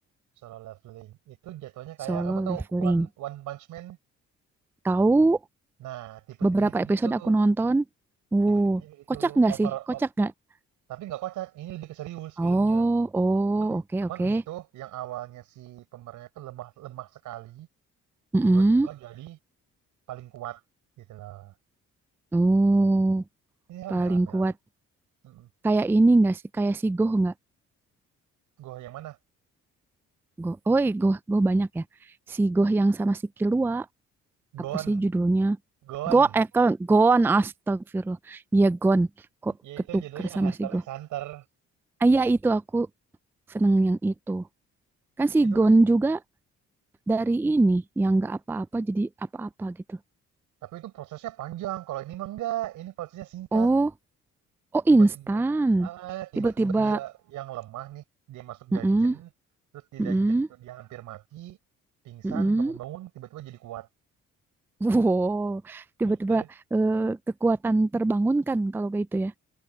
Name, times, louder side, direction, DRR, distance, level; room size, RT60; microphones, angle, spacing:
voice 1, 0.4-4.0 5.8-7.4 8.5-10.0 10.9-12.9 13.5-17.7 18.5-19.4 20.1-20.6 21.0-21.5 23.7-24.5 25.2-25.5 28.6-29.2 34.5-35.0 35.8-36.4 39.6-41.4 45.4-45.8 50.6-53.7 54.9-55.4 55.8-59.3 59.7-61.6 62.0-63.9 66.0-66.5, right 14 dB, 90° right, 5.4 m, -39 dB
voice 2, 2.1-3.1 4.8-5.4 6.4-7.9 8.3-8.8 9.1-9.7 10.2-10.3 12.4-14.4 18.3-18.9 22.3-23.2 23.9-24.5 25.6-27.3 30.4-31.8 32.3-33.9 34.9-35.6 36.1-39.1 39.4-39.5 39.9-40.0 40.4-40.8 42.0-42.9 43.5-44.4 45.2-46.2 47.1-50.0 53.5-53.9 54.7-55.9 56.4-57.0 58.7-59.2 60.0-60.5 62.2-62.8 64.8-66.4 66.7-69.3, right 2 dB, 5° right, 0.4 m, -23 dB
cardioid pair, 90°, 30 cm